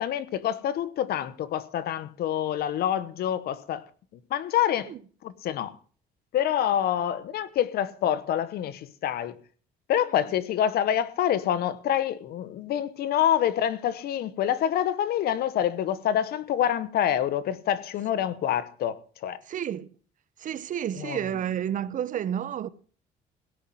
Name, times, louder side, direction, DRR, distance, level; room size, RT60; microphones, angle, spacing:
voice 1, 0.0-3.8 4.1-4.9 5.2-5.8 6.3-9.4 9.9-19.4 20.9-21.3, left 10 dB, 70° left, 1.2 m, -27 dB
voice 2, 19.5-19.9 20.4-22.7, right 9 dB, 50° right, 0.8 m, -30 dB
17.0 x 5.7 x 7.8 m
cardioid pair, 110°, 17 cm